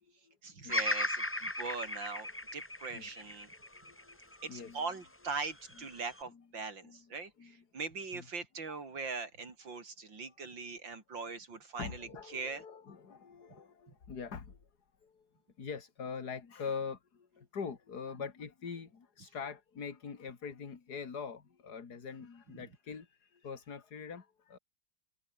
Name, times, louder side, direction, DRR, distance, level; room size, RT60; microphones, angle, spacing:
voice 1, 0.4-3.5 4.4-12.6, right 4 dB, 85° right, 4.5 m, -41 dB
Bird vocalization bird call bird song, 0.7-4.9 5.5-6.2, left 1 dB, 10° left, 1.4 m, -37 dB
voice 2, 3.5-4.8 5.8-5.9 6.3-6.4 6.8-7.1 7.4-7.6 8.1-8.3 8.7-8.8 11.8-14.6 15.0-15.3 15.6-24.6, left 6 dB, 60° left, 2.8 m, -44 dB
open air
omnidirectional pair, 2.0 m